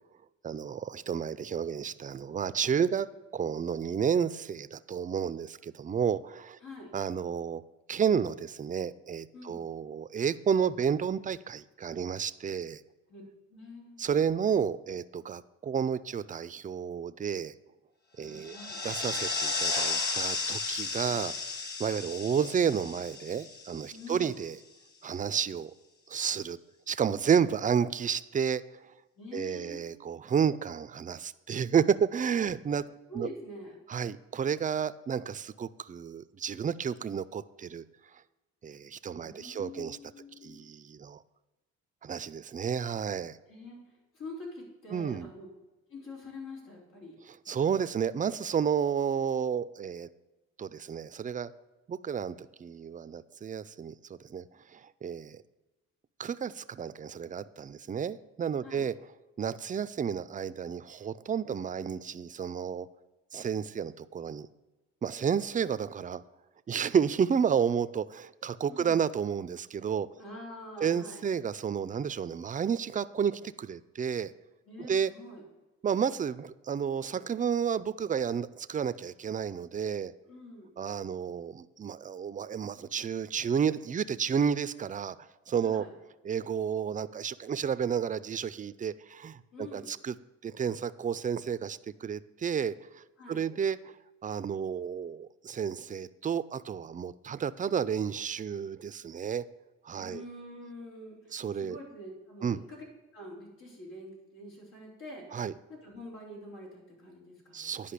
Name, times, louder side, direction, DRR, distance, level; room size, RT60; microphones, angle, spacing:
voice 1, 0.4-3.1 3.3-6.6 6.9-7.6 7.9-12.8 14.0-17.5 18.2-18.6 18.8-21.3 21.8-24.6 25.0-25.7 26.1-26.6 26.9-28.6 29.3-32.8 33.1-33.3 33.9-37.8 38.6-40.0 40.4-41.2 42.0-43.4 44.9-45.3 47.3-50.1 50.6-51.5 51.9-53.9 54.2-54.4 54.7-55.4 56.2-58.9 59.4-62.9 63.3-64.5 65.0-66.2 66.7-70.1 70.8-74.3 74.8-75.1 75.8-80.1 80.8-85.1 85.5-85.8 86.2-90.1 90.4-93.9 94.2-99.4 99.9-100.2 101.3-101.8 102.4-102.6 105.3-105.5 107.5-107.9, right 7 dB, 25° right, 15 dB, 0.4 m, -31 dB
voice 2, 6.6-6.9 9.3-9.7 13.1-13.2 13.5-14.0 18.2-19.2 23.9-24.3 29.2-29.8 33.1-33.8 39.2-40.6 43.5-43.8 44.1-45.5 45.9-47.2 58.6-58.9 68.7-69.0 70.1-71.3 74.7-75.4 80.2-80.7 85.6-85.9 89.5-89.9 93.2-93.4 99.9-102.8 103.1-105.2 105.7-107.7, left 1 dB, 85° left, -4 dB, 4.0 m, -45 dB
sound 1, 18.3-24.2, left 4 dB, 35° left, 1.6 m, -34 dB
10.0 x 5.3 x 6.6 m, 1.1 s
cardioid pair, 90°, 30 cm